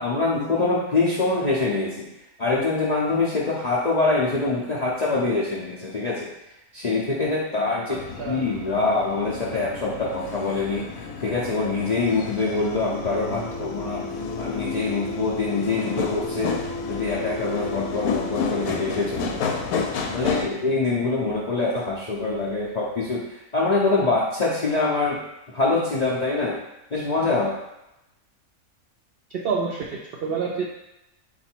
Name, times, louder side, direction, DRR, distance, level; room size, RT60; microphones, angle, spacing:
voice 1, 0.0-2.1 2.4-6.3 6.7-10.8 11.2-14.0 14.4-16.5 16.9-19.6 20.1-25.2 25.5-26.6 26.9-27.6, left 3 dB, 50° left, -6 dB, 0.5 m, -24 dB
sound 1, 7.9-20.5, left 4 dB, 90° left, 1.1 m, -30 dB
voice 2, 7.9-8.4 29.4-30.7, right 5 dB, 70° right, -2 dB, 0.5 m, -28 dB
4.0 x 2.6 x 4.4 m, 0.91 s
omnidirectional pair, 1.5 m